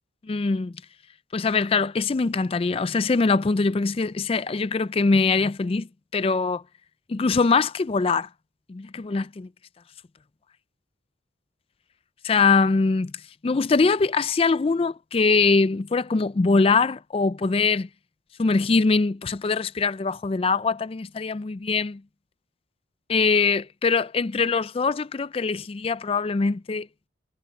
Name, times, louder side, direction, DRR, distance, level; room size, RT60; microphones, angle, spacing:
voice 1, 0.3-0.7 1.3-5.9 6.1-6.6 7.1-8.3 8.7-9.5 12.2-13.1 13.4-17.9 18.4-22.0 23.1-26.9, left 4 dB, 30° left, 0.4 m, -22 dB
head